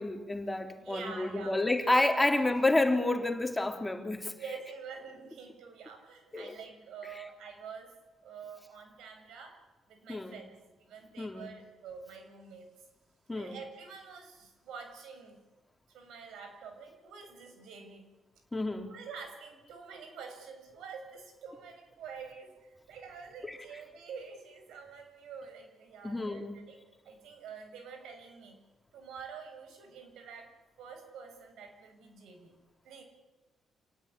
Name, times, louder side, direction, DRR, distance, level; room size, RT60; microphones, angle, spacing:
voice 1, 0.0-4.3 6.3-6.6 10.1-10.3 11.2-11.5 13.3-13.6 18.5-18.9 23.4-23.6 26.0-26.5, left 2 dB, 15° left, 5 dB, 3.2 m, -29 dB
voice 2, 0.7-1.6 4.4-7.9 8.2-9.6 9.9-10.5 10.8-12.7 13.4-15.4 15.9-18.0 18.9-26.8 27.0-28.6 28.9-30.5 30.8-32.5 32.8-33.0, right 5 dB, 80° right, 5 dB, 6.9 m, -47 dB
27.0 x 18.0 x 9.9 m, 1.1 s
cardioid pair, 90°, 0 cm